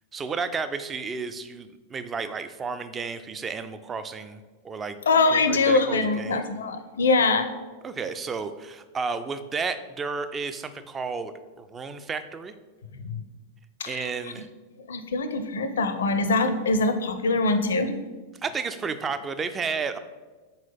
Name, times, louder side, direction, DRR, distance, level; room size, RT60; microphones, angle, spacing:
voice 1, 0.1-5.0 5.3-6.4 7.8-12.5 13.9-14.5 18.4-20.0, right 5 dB, 20° right, 11 dB, 0.4 m, -32 dB
voice 2, 5.1-7.5 13.1-13.2 13.8-14.1 14.9-17.9, left 3 dB, 65° left, 9 dB, 0.5 m, -23 dB
4.6 x 3.9 x 5.7 m, 1.3 s
figure-of-eight pair, 90°, 0 cm